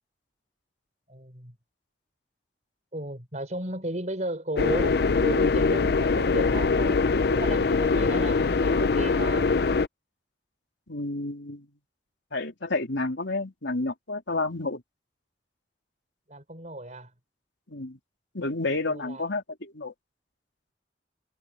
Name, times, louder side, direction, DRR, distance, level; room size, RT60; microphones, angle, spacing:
voice 1, 1.1-1.5 2.9-9.6 16.3-17.1 18.9-19.2, right 1 dB, 40° right, 6.4 m, -35 dB
sound 1, 4.6-9.9, left 4 dB, 60° left, 0.5 m, -23 dB
voice 2, 10.9-11.7 12.3-14.8 17.7-18.0 18.3-19.9, left 2 dB, 80° left, 3.3 m, -30 dB
head